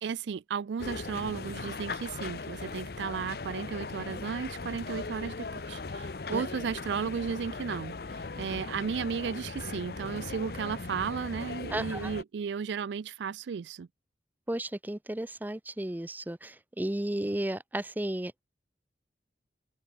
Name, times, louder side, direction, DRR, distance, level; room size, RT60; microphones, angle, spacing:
voice 1, 0.0-13.9, right 6 dB, 85° right, 0.4 m, -34 dB
sound 1, 0.8-12.2, left 3 dB, 60° left, 0.7 m, -39 dB
voice 2, 11.7-12.1 14.5-18.4, right 1 dB, 10° right, 0.5 m, -34 dB
open air
head